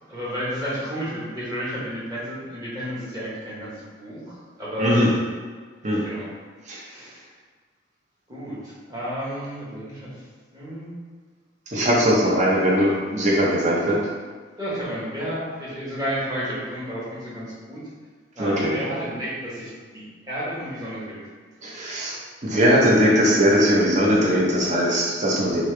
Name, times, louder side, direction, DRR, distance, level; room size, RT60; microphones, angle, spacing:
voice 1, 0.1-5.0 6.0-6.3 6.7-7.3 8.3-10.1 10.5-10.9 14.6-17.8 18.3-21.2, equal, 20° right, -9 dB, 1.3 m, -32 dB
voice 2, 4.8-5.1 5.8-6.0 6.7-6.8 11.7-14.0 18.4-18.8 21.6-25.6, equal, 40° right, -4 dB, 0.7 m, -20 dB
3.6 x 3.2 x 3.3 m, 1.5 s
head